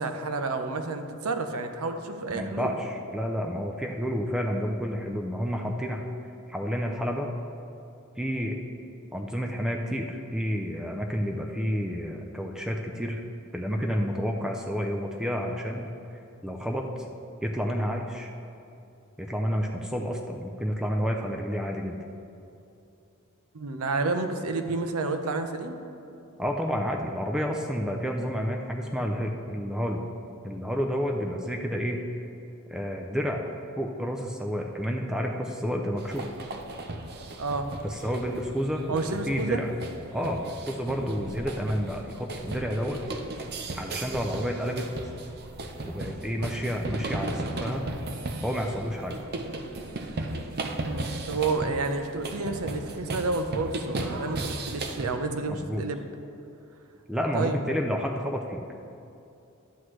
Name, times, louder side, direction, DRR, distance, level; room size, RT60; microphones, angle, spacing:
voice 1, 0.0-2.7 23.5-25.8 37.4-37.7 38.9-39.7 50.9-56.1 57.3-57.6, right 3 dB, 85° right, 7 dB, 0.7 m, -30 dB
voice 2, 2.3-6.1 6.5-7.3 8.2-8.6 9.1-13.2 13.5-15.9 16.4-16.9 17.4-18.3 19.2-22.0 26.4-30.0 30.4-32.0 32.7-33.5 33.8-36.3 37.8-39.7 40.1-43.0 43.8-44.9 45.8-47.9 48.4-49.1 55.5-55.9 57.1-58.6, equal, 5° right, 1 dB, 0.4 m, -30 dB
sound 1, 36.0-55.2, right 2 dB, 50° right, 0.6 m, -36 dB
11.5 x 7.9 x 3.2 m, 2.7 s
head